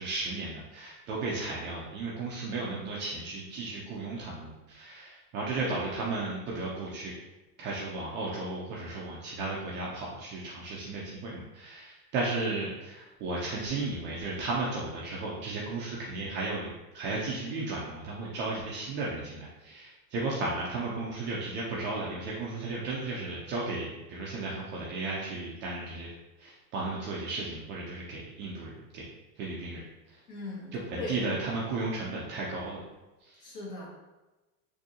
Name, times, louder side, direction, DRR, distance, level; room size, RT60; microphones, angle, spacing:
voice 1, 0.0-7.1 7.6-26.1 26.4-29.1 29.4-29.8 30.1-30.2 30.7-32.8 33.2-33.4, right 3 dB, 25° right, -4 dB, 0.3 m, -34 dB
voice 2, 30.3-31.2 33.4-33.9, left 3 dB, 55° left, -4 dB, 1.5 m, -39 dB
3.6 x 2.6 x 2.7 m, 1.1 s
hypercardioid pair, 115°, 49 cm